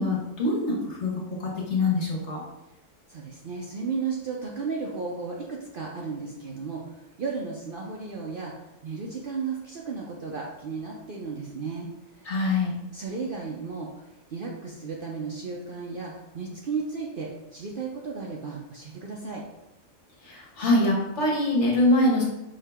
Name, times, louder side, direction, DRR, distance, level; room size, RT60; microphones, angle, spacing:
voice 1, 0.0-2.4 12.2-12.8 20.2-22.2, left 2 dB, 60° left, -2 dB, 1.4 m, -24 dB
voice 2, 3.1-12.3 12.9-19.4, right 4 dB, 60° right, -2 dB, 0.6 m, -34 dB
5.4 x 2.8 x 3.4 m, 0.93 s
omnidirectional pair, 1.4 m